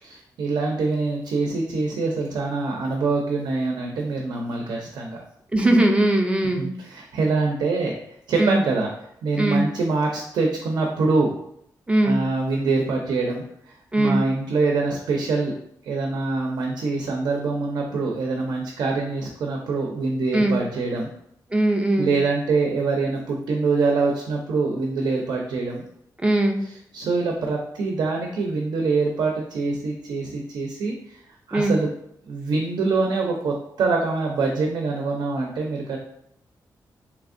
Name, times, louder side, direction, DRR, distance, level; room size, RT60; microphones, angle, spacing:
voice 1, 0.0-5.2 6.6-8.0 8.3-8.9 9.2-11.4 12.0-15.5 15.8-21.1 22.0-25.8 26.9-31.2 31.5-31.9 32.2-36.0, right 3 dB, 85° right, 1 dB, 0.5 m, -24 dB
voice 2, 5.5-6.7 8.4-8.6 9.4-9.6 11.9-12.2 13.9-14.2 20.3-20.6 21.5-22.1 26.2-26.6 31.5-31.7, right 1 dB, 15° right, 3 dB, 0.3 m, -20 dB
3.4 x 3.0 x 2.5 m, 0.71 s
wide cardioid pair, 140°, 7 cm